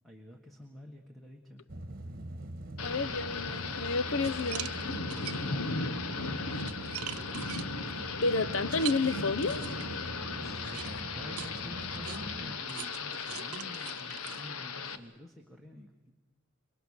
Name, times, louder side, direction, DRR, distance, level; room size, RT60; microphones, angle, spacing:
voice 1, 0.0-1.6 5.1-5.8 10.4-16.1, left 1 dB, ahead, 2 dB, 1.6 m, -49 dB
sound 1, 1.7-12.6, right 1 dB, 40° right, 1.5 m, -43 dB
Thunder / Rain, 2.8-15.0, left 4 dB, 85° left, 1.3 m, -37 dB
voice 2, 2.8-4.7 8.2-9.6, left 3 dB, 65° left, 16 dB, 0.7 m, -30 dB
sound 2, 3.7-3.8 4.2-5.7 6.2-10.0 10.6-15.1, right 11 dB, 85° right, 0.7 m, -43 dB
28.0 x 22.5 x 6.6 m, 1.1 s
head